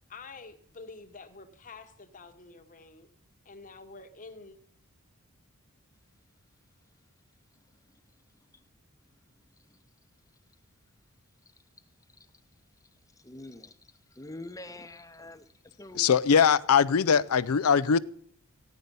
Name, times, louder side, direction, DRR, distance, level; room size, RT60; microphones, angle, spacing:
voice 1, 0.1-3.1 3.4-4.6, left 4 dB, 35° left, 1.2 m, -48 dB
voice 2, 13.2-16.1, left 2 dB, 15° left, 0.8 m, -46 dB
voice 3, 16.0-18.0, left 6 dB, 80° left, 0.5 m, -21 dB
15.5 x 10.5 x 5.4 m
head